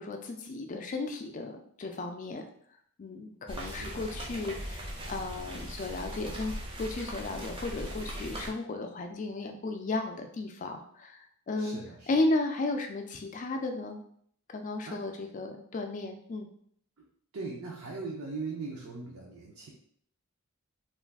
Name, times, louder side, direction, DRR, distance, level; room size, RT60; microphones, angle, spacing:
voice 1, 0.0-2.4 3.0-6.5 6.8-11.8 12.1-14.0 14.5-16.5, left 2 dB, 35° left, 4 dB, 0.3 m, -34 dB
sound 1, 3.5-8.5, equal, 25° right, 0.5 m, -39 dB
voice 2, 3.6-4.1 11.6-12.1 14.9-15.0 17.0-17.1 17.3-19.7, right 3 dB, 75° right, -2 dB, 0.5 m, -40 dB
2.4 x 2.3 x 3.4 m, 0.64 s
head